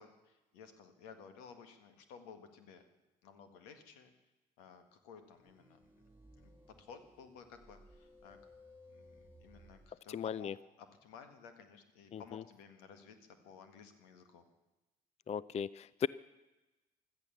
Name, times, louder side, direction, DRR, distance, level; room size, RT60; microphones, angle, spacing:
voice 1, 0.0-2.8 3.2-4.1 4.6-6.0 6.4-6.5 6.8-8.4 8.9-14.5, left 6 dB, 85° left, 8 dB, 1.8 m, -56 dB
sound 1, 5.3-10.0, left 1 dB, 10° right, 2.9 m, -60 dB
voice 2, 10.1-10.5 12.1-12.4 15.3-16.1, left 7 dB, 35° left, 20 dB, 0.4 m, -37 dB
16.5 x 12.5 x 7.1 m, 1.0 s
hypercardioid pair, 55°, 20 cm